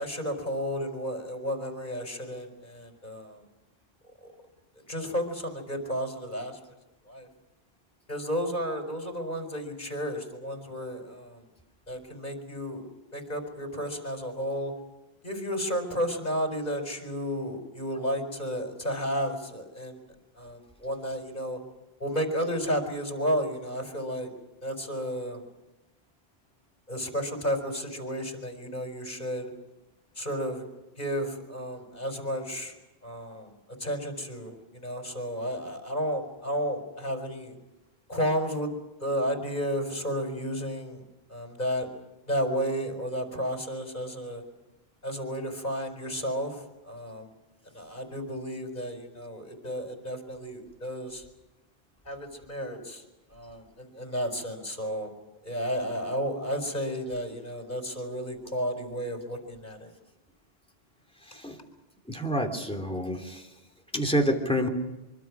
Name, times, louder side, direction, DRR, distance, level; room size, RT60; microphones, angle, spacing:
voice 1, 0.0-3.4 4.2-4.3 4.9-6.6 7.1-7.3 8.1-11.4 11.9-12.9 13.1-14.7 15.2-20.0 20.4-21.6 22.0-24.3 24.6-25.4 26.9-29.5 30.2-30.6 31.0-32.8 33.0-37.6 38.1-38.7 39.0-41.9 42.3-44.4 45.0-47.3 47.7-51.3 52.0-53.0 53.3-55.1 55.4-59.9 61.6-61.7, equal, 45° left, 4 dB, 4.6 m, -32 dB
voice 2, 62.1-63.4 63.9-64.7, equal, 5° left, 3 dB, 3.0 m, -27 dB
24.5 x 24.5 x 6.2 m, 1.0 s
omnidirectional pair, 1.0 m